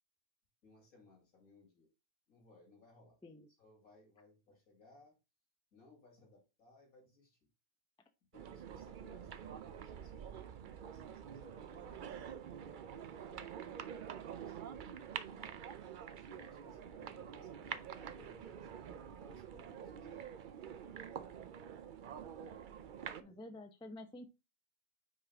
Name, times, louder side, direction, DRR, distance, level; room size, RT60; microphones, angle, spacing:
voice 1, 0.6-1.9 2.3-3.2 3.6-5.2 5.7-7.4 8.3-12.4 12.9-15.7 16.3-21.3 22.4-22.6 23.2-23.4, left 3 dB, 80° left, 2.8 m, -64 dB
sound 1, 8.3-23.2, right 8 dB, 85° right, 0.4 m, -47 dB
voice 2, 23.2-24.2, left 1 dB, 5° left, 0.4 m, -50 dB
5.5 x 5.0 x 3.4 m
omnidirectional pair, 1.5 m